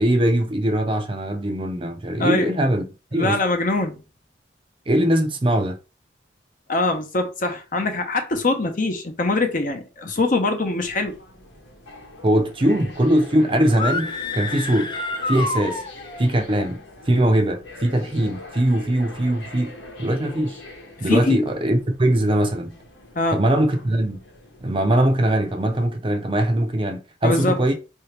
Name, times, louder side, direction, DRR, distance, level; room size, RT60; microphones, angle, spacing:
voice 1, 0.0-2.8 3.1-3.4 4.9-5.8 12.2-14.9 15.3-15.8 16.2-16.8 17.1-20.6 21.0-22.7 23.3-24.2 24.6-27.7, right 1 dB, 30° right, 0.5 m, -21 dB
voice 2, 2.2-2.5 3.1-4.0 6.7-11.1 21.1-21.4 23.2-23.4 27.2-27.6, left 2 dB, 45° left, 0.8 m, -23 dB
sound 1, 10.8-25.9, left 2 dB, 70° left, 1.1 m, -43 dB
sound 2, 13.7-16.3, left 3 dB, 25° left, 0.4 m, -28 dB
4.7 x 2.8 x 3.3 m
head